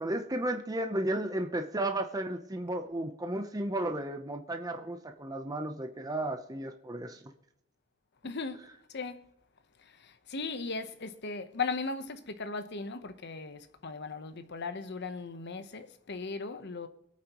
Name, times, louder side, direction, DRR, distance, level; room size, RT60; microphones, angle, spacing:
voice 1, 0.0-7.2, right 1 dB, 20° right, 0.8 m, -33 dB
voice 2, 8.2-8.7 8.9-9.2 10.0-16.9, left 4 dB, 55° left, 1.0 m, -37 dB
23.5 x 9.0 x 3.0 m
head